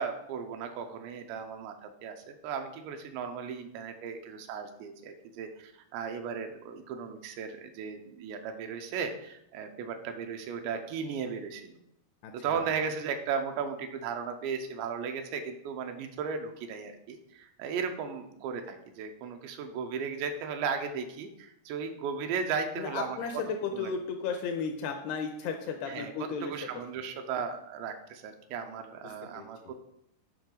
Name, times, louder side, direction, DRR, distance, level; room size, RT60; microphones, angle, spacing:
voice 1, 0.0-11.8 12.3-23.2 23.7-23.9 25.9-26.1 26.4-29.7, right 6 dB, 85° right, 6 dB, 2.9 m, -36 dB
voice 2, 12.2-12.7 22.8-26.5 29.0-29.7, left 5 dB, 80° left, 4 dB, 2.5 m, -35 dB
10.0 x 5.5 x 3.9 m, 0.81 s
omnidirectional pair, 5.2 m